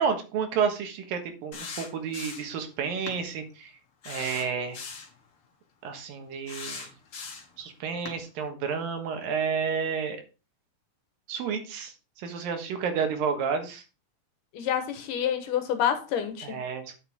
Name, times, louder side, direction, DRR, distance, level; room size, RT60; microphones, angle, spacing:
voice 1, 0.0-3.7 4.1-4.8 5.8-6.9 7.6-10.2 11.3-13.8 16.4-16.9, right 6 dB, 85° right, 3.1 m, -30 dB
sound 1, 1.5-2.6 3.1-3.2 4.0-5.1 6.5-7.6 8.1-8.2, left 5 dB, 50° left, 2.1 m, -39 dB
voice 2, 14.5-16.6, left 9 dB, 70° left, 2.7 m, -28 dB
9.6 x 6.7 x 3.5 m
omnidirectional pair, 4.0 m